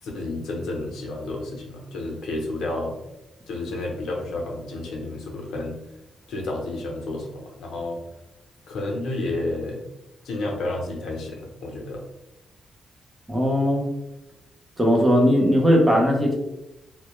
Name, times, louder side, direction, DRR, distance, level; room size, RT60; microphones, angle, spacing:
voice 1, 0.0-3.0 3.5-5.8 6.3-8.0 8.7-9.8 10.2-12.0, left 2 dB, 85° left, 0 dB, 0.6 m, -31 dB
voice 2, 13.3-13.9 14.8-16.4, equal, 10° right, -1 dB, 0.5 m, -18 dB
2.1 x 2.1 x 2.9 m, 0.92 s
wide cardioid pair, 175°, 0 cm